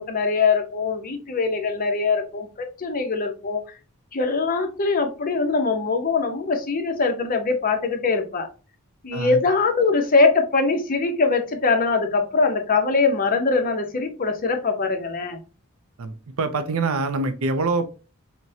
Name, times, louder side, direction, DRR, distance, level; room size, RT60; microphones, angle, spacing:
voice 1, 0.0-3.6 4.1-8.5 9.0-15.4, left 4 dB, 40° left, 0.7 m, -22 dB
voice 2, 16.0-17.8, right 3 dB, 80° right, 0.5 m, -25 dB
5.8 x 2.2 x 2.7 m
head